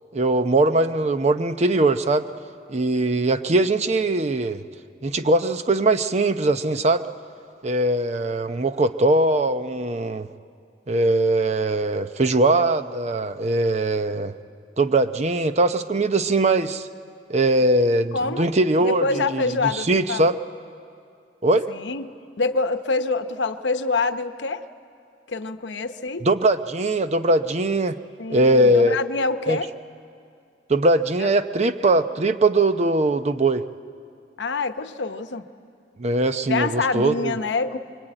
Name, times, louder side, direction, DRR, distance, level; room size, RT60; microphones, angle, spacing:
voice 1, 0.1-2.3 2.7-4.6 5.0-7.1 7.6-10.3 10.9-14.3 14.8-16.9 17.3-20.3 21.4-21.7 26.2-28.0 28.3-29.0 29.5-29.6 30.7-33.6 36.0-37.4, right 2 dB, 40° right, 10 dB, 0.7 m, -21 dB
voice 2, 18.1-18.5 18.8-20.3 21.7-24.6 25.3-26.3 28.2-29.7 31.2-31.3 34.4-35.4 36.5-37.8, left 3 dB, 90° left, 10 dB, 0.8 m, -26 dB
23.5 x 23.5 x 9.0 m, 2.4 s
head